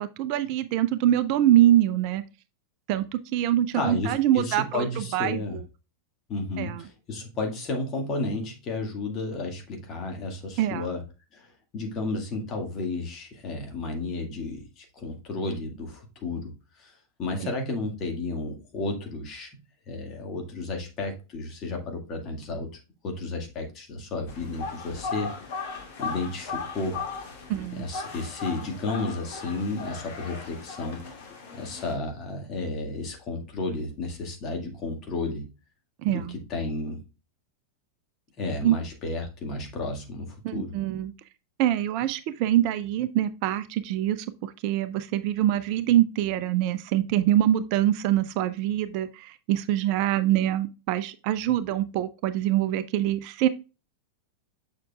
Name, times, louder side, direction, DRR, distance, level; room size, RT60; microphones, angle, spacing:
voice 1, 0.0-2.2 2.9-5.6 6.6-6.8 10.6-10.9 27.5-27.9 36.0-36.4 38.6-38.8 40.4-41.1 41.6-53.5, right 12 dB, 45° right, 13 dB, 0.4 m, -24 dB
voice 2, 3.7-5.6 6.3-11.0 11.3-16.5 16.8-16.9 17.2-19.5 19.9-22.7 23.0-25.3 26.0-27.0 27.7-31.0 31.5-35.5 36.1-37.0 38.4-40.7, left 2 dB, 30° left, 2 dB, 1.9 m, -32 dB
sound 1, 24.3-31.9, left 4 dB, 50° left, 2.0 m, -37 dB
6.7 x 6.5 x 2.3 m, 0.30 s
figure-of-eight pair, 90°, 0 cm